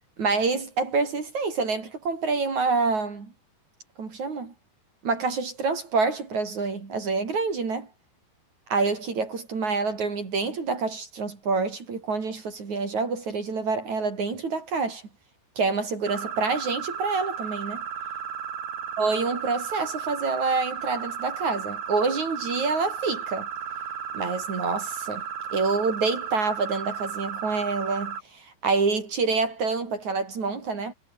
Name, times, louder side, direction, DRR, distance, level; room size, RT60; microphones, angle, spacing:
voice 1, 0.2-3.3 4.0-4.5 5.0-7.9 8.7-15.0 15.6-17.8 19.0-23.5 24.1-25.2 25.5-30.9, right 4 dB, 40° right, 5.0 m, -27 dB
sound 1, 16.1-28.2, right 7 dB, 75° right, 6.3 m, -34 dB
omnidirectional pair, 5.2 m